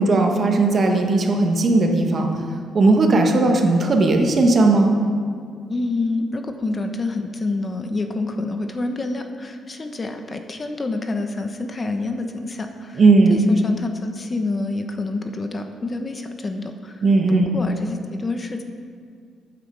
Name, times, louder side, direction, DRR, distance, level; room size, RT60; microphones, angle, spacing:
voice 1, 0.0-2.3 2.7-4.9 13.0-13.4 17.0-17.5, right 3 dB, 45° right, 3 dB, 1.5 m, -17 dB
voice 2, 5.7-13.0 13.3-18.6, left 2 dB, 30° left, 6 dB, 1.0 m, -27 dB
13.0 x 9.2 x 4.8 m, 2.1 s
cardioid pair, 90°, 0 cm